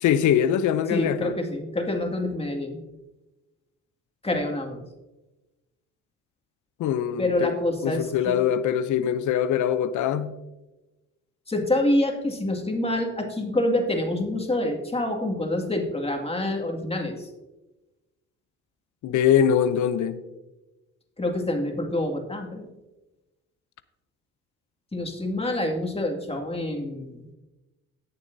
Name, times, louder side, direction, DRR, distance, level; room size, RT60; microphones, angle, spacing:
voice 1, 0.0-1.3 6.8-7.5 7.8-10.3 19.0-20.2, left 9 dB, 75° left, 0.7 m, -23 dB
voice 2, 0.9-2.8 4.2-4.8 7.2-8.4 11.5-17.3 21.2-22.7 24.9-27.2, left 1 dB, 20° left, 2.1 m, -27 dB
18.0 x 7.0 x 2.7 m
cardioid pair, 90°, 30 cm